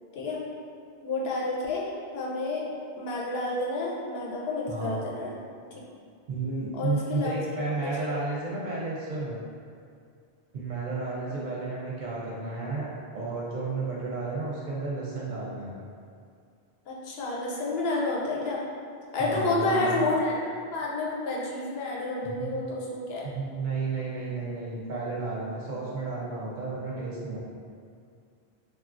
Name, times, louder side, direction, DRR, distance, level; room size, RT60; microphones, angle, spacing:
voice 1, 1.0-2.6 3.0-5.3 5.7-5.8 6.8-7.3 7.8-8.1 11.3-11.4 16.9-18.6 19.1-20.4 20.7-23.3, left 2 dB, 75° left, -5 dB, 0.8 m, -30 dB
voice 2, 4.7-5.0 6.3-9.4 10.5-15.7 19.2-20.0 22.2-22.6 23.2-27.4, right 3 dB, 60° right, -6 dB, 0.6 m, -32 dB
3.3 x 2.3 x 2.4 m, 2.3 s
omnidirectional pair, 1.1 m